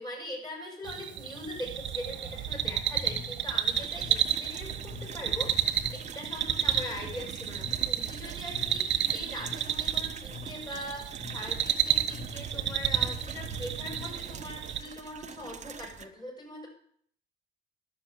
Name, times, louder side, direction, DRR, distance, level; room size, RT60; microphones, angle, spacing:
voice 1, 0.0-16.7, left 1 dB, 20° left, 0 dB, 6.9 m, -42 dB
sound 1, 0.9-14.8, right 9 dB, 70° right, 1.4 m, -31 dB
sound 2, 3.0-14.7, left 5 dB, 50° left, 3.5 m, -48 dB
sound 3, 3.7-16.1, right 6 dB, 35° right, 1.0 m, -46 dB
11.5 x 7.1 x 9.6 m, 0.64 s
cardioid pair, 90°, 20 cm